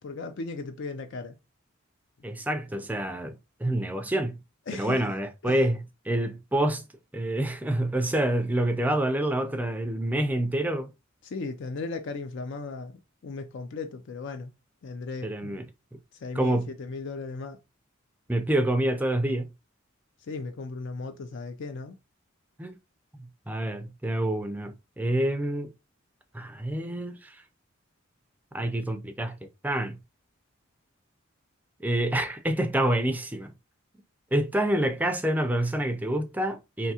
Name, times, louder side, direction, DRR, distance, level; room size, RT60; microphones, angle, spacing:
voice 1, 0.0-1.3 4.7-5.0 5.4-5.6 11.2-14.5 14.8-15.7 16.1-17.6 20.2-22.0, left 3 dB, 60° left, 0.4 m, -36 dB
voice 2, 2.2-4.4 4.7-6.8 7.1-10.9 15.2-15.6 16.4-16.7 18.3-19.5 22.6-22.8 23.2-25.7 26.3-27.4 28.5-29.4 29.6-30.0 31.8-33.5 34.3-36.9, right 1 dB, 10° right, 0.4 m, -27 dB
3.5 x 2.7 x 2.8 m
head